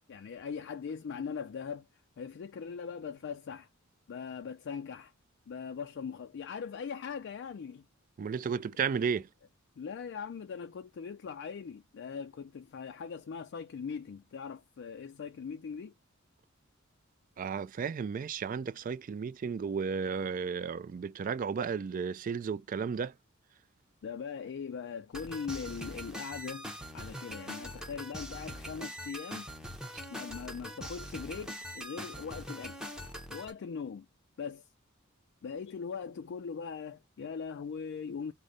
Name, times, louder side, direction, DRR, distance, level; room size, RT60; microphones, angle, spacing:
voice 1, 0.1-1.9 2.2-3.7 4.1-5.1 5.5-7.8 9.8-15.9 24.0-26.7 26.9-29.5 30.1-32.9 33.3-34.1 34.4-34.7 35.4-38.3, left 6 dB, 60° left, 0.4 m, -40 dB
voice 2, 8.2-9.3 17.4-23.1, right 6 dB, 40° right, 0.3 m, -33 dB
sound 1, 25.1-33.5, equal, 5° right, 0.7 m, -42 dB
5.0 x 2.1 x 3.9 m
head